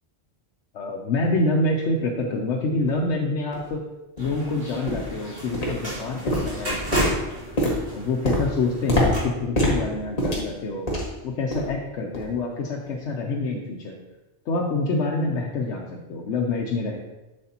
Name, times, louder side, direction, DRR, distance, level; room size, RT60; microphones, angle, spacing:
voice 1, 0.7-3.8 4.2-6.8 7.9-10.9 11.2-14.0 14.5-17.0, left 2 dB, 90° left, -1 dB, 1.1 m, -26 dB
sound 1, 2.9-3.0 3.5-3.6 4.2-4.3 4.9-5.2 5.5-6.0 6.3-11.2 11.5-11.8 12.1-12.3 12.9-13.0, equal, 35° left, 1.6 m, -25 dB
sound 2, 4.2-9.2, right 1 dB, 70° right, 2.9 m, -34 dB
7.6 x 7.2 x 2.9 m, 1.0 s
omnidirectional pair, 1.2 m